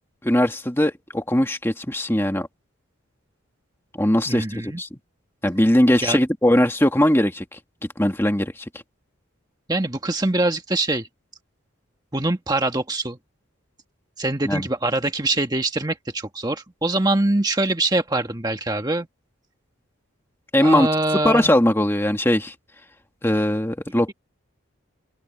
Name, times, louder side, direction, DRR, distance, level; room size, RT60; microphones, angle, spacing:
voice 1, 0.2-2.5 4.0-4.9 5.4-7.6 8.0-8.7 14.5-14.7 20.5-20.9 21.2-22.5 23.2-24.1, left 1 dB, 10° left, 1.8 m, -20 dB
voice 2, 4.3-4.8 6.0-6.2 9.7-11.1 12.1-13.2 14.2-19.1 20.6-21.5, right 2 dB, 20° right, 1.5 m, -23 dB
head